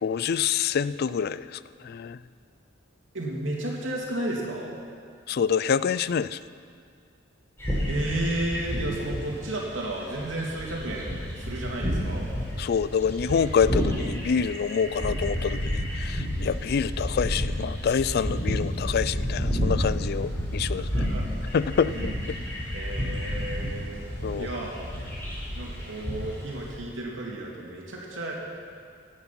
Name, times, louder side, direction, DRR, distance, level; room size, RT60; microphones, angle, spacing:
voice 1, 0.0-2.2 5.3-6.4 12.6-21.1 21.5-22.4 24.2-24.5, left 6 dB, 55° left, 16 dB, 0.4 m, -27 dB
voice 2, 3.1-4.8 7.9-12.3 20.8-21.2 21.9-22.1 22.7-24.0 24.3-24.8 25.5-28.4, right 1 dB, 80° right, -2 dB, 2.9 m, -33 dB
sound 1, 7.6-26.7, equal, 15° left, 3.9 m, -30 dB
17.5 x 9.5 x 6.0 m, 2.2 s
head